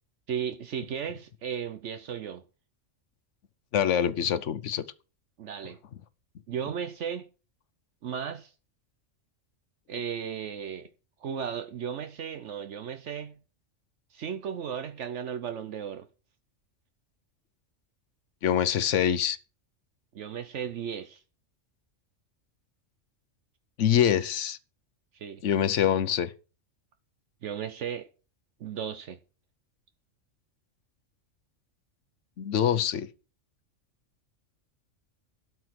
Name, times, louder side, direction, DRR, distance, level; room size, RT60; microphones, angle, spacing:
voice 1, 0.3-2.4 5.4-5.8 6.5-7.3 8.0-8.5 9.9-10.9 11.2-13.4 14.1-16.1 20.1-21.2 25.1-25.4 27.4-28.1 28.6-29.2, right 8 dB, 70° right, 1.1 m, -35 dB
voice 2, 3.7-4.8 18.4-19.4 23.8-24.6 25.4-26.3 32.4-33.1, left 9 dB, 70° left, 1.2 m, -25 dB
12.5 x 4.7 x 7.7 m
omnidirectional pair, 1.3 m